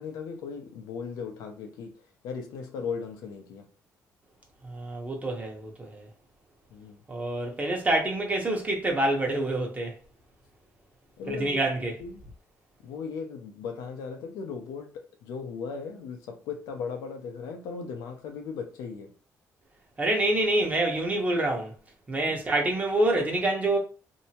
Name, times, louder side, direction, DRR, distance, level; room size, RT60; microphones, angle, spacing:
voice 1, 0.0-3.7 6.7-7.0 11.2-11.6 12.0-12.2 12.8-19.1 22.2-22.4, left 5 dB, 90° left, 0.6 m, -37 dB
voice 2, 4.6-6.1 7.1-9.9 11.3-11.9 20.0-21.7 22.1-23.8, right 1 dB, 25° right, 0.9 m, -26 dB
2.7 x 2.1 x 2.8 m
cardioid pair, 100°, 6 cm